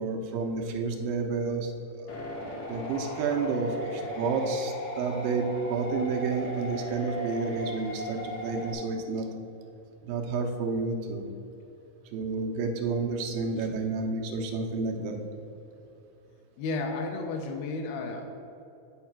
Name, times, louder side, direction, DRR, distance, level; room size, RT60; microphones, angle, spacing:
voice 1, 0.0-1.7 2.0-2.1 2.7-9.3 10.0-11.3 12.1-15.2, right 4 dB, 80° right, 2 dB, 2.4 m, -30 dB
sound 1, 2.1-8.7, equal, 60° left, 1.5 m, -37 dB
voice 2, 16.6-18.3, left 3 dB, 85° left, 2 dB, 2.7 m, -32 dB
10.0 x 4.8 x 5.9 m, 2.8 s
omnidirectional pair, 4.3 m